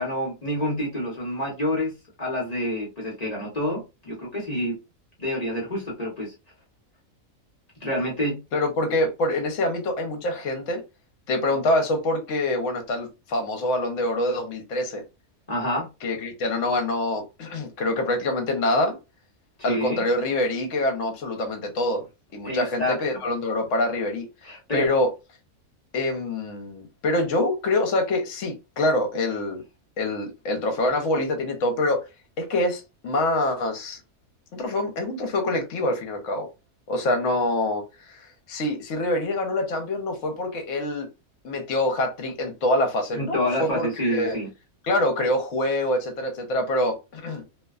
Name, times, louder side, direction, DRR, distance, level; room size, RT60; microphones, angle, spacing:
voice 1, 0.0-4.8 5.2-6.3 7.8-8.4 15.5-15.9 19.7-20.0 22.4-23.2 24.4-24.9 43.1-44.5, left 1 dB, 35° left, 0.8 m, -28 dB
voice 2, 8.5-10.8 11.3-15.0 16.0-19.0 19.6-22.0 22.3-25.1 25.9-29.6 30.0-32.1 32.4-34.0 34.5-36.5 36.9-37.8 38.1-41.1 41.4-44.4 44.8-47.4, left 1 dB, 65° left, 1.1 m, -25 dB
2.7 x 2.1 x 2.3 m
omnidirectional pair, 1.4 m